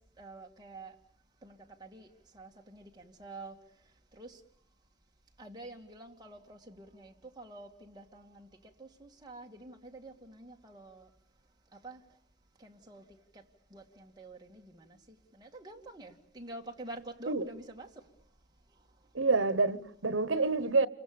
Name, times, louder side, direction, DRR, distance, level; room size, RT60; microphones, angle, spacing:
voice 1, 0.2-0.9 1.4-2.1 2.3-3.6 4.1-4.4 5.4-8.5 8.8-11.1 11.8-12.0 12.6-13.0 13.7-15.0 15.4-17.9, right 2 dB, 20° right, 2.3 m, -48 dB
voice 2, 19.1-20.9, right 3 dB, 80° right, 1.1 m, -27 dB
29.0 x 24.0 x 7.0 m
head